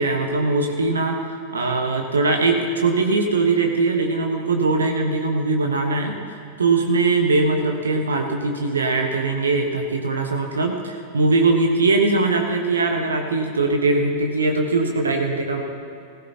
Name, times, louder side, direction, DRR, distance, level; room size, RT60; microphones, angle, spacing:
voice 1, 0.0-15.6, right 3 dB, 70° right, 3 dB, 1.3 m, -21 dB
19.0 x 16.0 x 2.9 m, 2.4 s
figure-of-eight pair, 90°, 0 cm